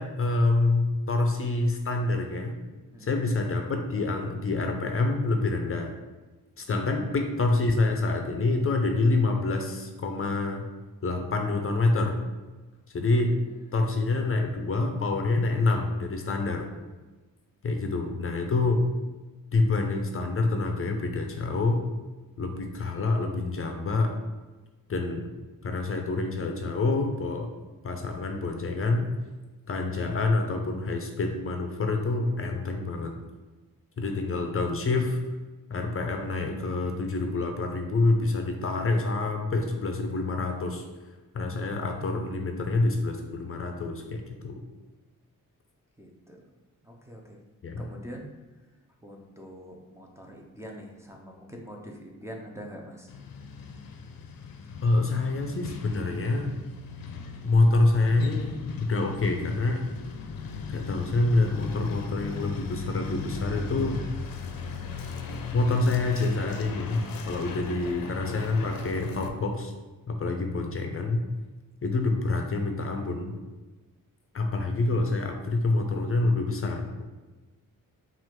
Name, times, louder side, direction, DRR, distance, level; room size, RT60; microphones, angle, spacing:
voice 1, 0.0-2.6 3.0-5.9 6.6-10.7 11.0-12.2 12.9-13.3 13.7-16.7 17.6-18.9 19.5-21.9 22.4-24.2 24.9-25.3 25.6-27.5 27.8-29.1 29.7-33.1 34.0-35.2 35.7-40.8 41.3-44.6 47.6-47.9 54.8-56.6 57.4-59.9 60.7-64.0 65.5-69.7 70.1-71.2 71.8-73.3 74.3-77.0, left 2 dB, 40° left, 4 dB, 0.5 m, -27 dB
voice 2, 2.9-3.2 13.4-13.8 46.0-46.4 46.8-47.4 47.8-48.3 49.0-53.1, equal, 10° right, -2 dB, 0.5 m, -44 dB
Truck, 53.1-69.3, left 4 dB, 90° left, 0.6 m, -37 dB
5.8 x 2.5 x 3.6 m, 1.2 s
wide cardioid pair, 135°, 34 cm